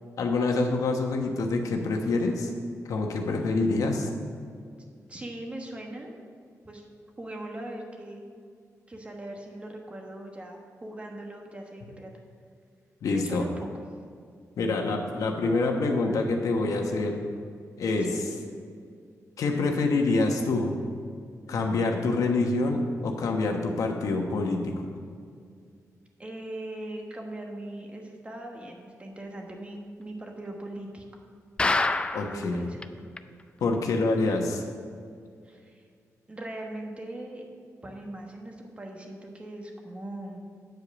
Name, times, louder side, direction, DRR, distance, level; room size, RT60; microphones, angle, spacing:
voice 1, 0.2-2.5 2.9-4.1 13.0-13.4 14.6-17.2 17.8-18.1 19.4-20.7 21.5-24.7 32.1-32.6 33.6-34.6, left 3 dB, 80° left, 3 dB, 1.1 m, -26 dB
voice 2, 5.1-6.1 6.6-6.9 7.2-8.3 8.9-12.1 13.1-13.8 18.0-18.3 21.5-21.8 26.2-31.2 31.9-32.8 35.4-35.8 36.3-37.5 37.8-40.4, right 1 dB, 20° right, 1 dB, 1.2 m, -40 dB
sound 1, 31.6-32.4 32.8-32.9 33.2-33.3 33.7-33.8, left 3 dB, 20° left, 0.3 m, -25 dB
9.2 x 5.1 x 7.0 m, 2.2 s
wide cardioid pair, 140°, 6 cm